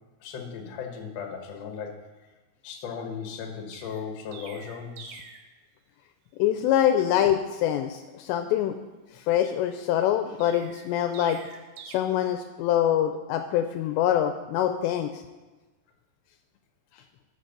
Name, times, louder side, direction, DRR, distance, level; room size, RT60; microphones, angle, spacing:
voice 1, 0.2-2.0 2.6-5.2, left 6 dB, 65° left, 3 dB, 1.6 m, -37 dB
Chirp tweet, 3.7-5.5 10.4-12.0, right 6 dB, 85° right, 3.3 m, -46 dB
voice 2, 6.4-8.8 9.1-11.4 11.9-15.1, left 11 dB, 85° left, 8 dB, 2.6 m, -24 dB
11.0 x 6.3 x 6.7 m, 1.2 s
omnidirectional pair, 5.3 m